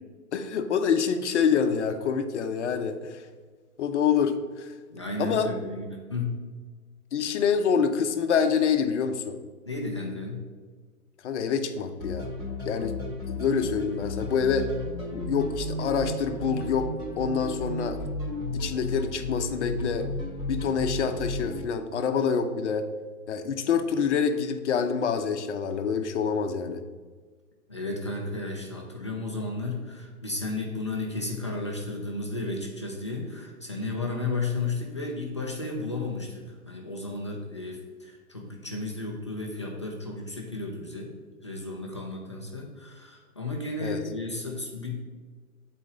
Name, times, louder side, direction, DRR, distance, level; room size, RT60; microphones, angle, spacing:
voice 1, 0.3-3.2 3.8-4.7 5.2-5.5 7.1-9.4 11.2-12.3 12.6-12.9 13.3-14.7 15.1-18.0 18.5-20.1 20.5-22.9 23.3-26.8 43.8-44.0, left 6 dB, 50° left, 7 dB, 0.7 m, -26 dB
voice 2, 4.9-6.4 9.7-10.4 27.7-41.1 41.4-45.0, left 2 dB, 20° left, -1 dB, 0.4 m, -33 dB
sound 1, 12.0-21.6, left 2 dB, 10° right, 0.9 m, -33 dB
8.2 x 4.2 x 3.9 m, 1.5 s
hypercardioid pair, 155°, 44 cm